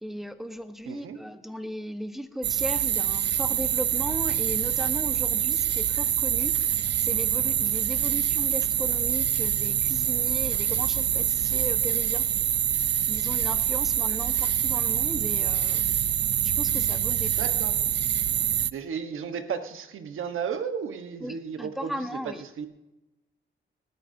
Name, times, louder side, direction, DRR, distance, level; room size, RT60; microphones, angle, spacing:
voice 1, 0.0-12.3 13.1-15.9 16.4-17.4 21.2-22.4, equal, ahead, 8 dB, 1.3 m, -37 dB
voice 2, 0.9-1.2 17.2-17.7 18.7-22.0 22.6-22.7, right 6 dB, 85° right, 7 dB, 1.4 m, -34 dB
sound 1, 2.4-18.7, right 10 dB, 60° right, 0.4 m, -25 dB
19.5 x 14.0 x 2.8 m, 0.97 s
cardioid pair, 85°, 20 cm